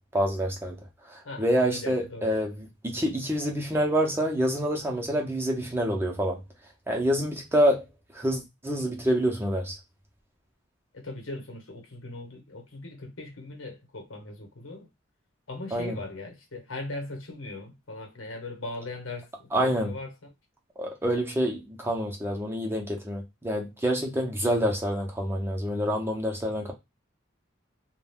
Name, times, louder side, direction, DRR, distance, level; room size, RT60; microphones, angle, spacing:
voice 1, 0.1-0.8 1.1-6.4 6.9-7.9 8.1-9.8 15.7-16.0 19.5-19.9 20.8-26.7, equal, 10° right, 0.5 m, -27 dB
voice 2, 1.2-2.4 10.9-14.9 15.5-20.3, left 2 dB, 85° left, 1.0 m, -39 dB
2.4 x 2.2 x 3.4 m
head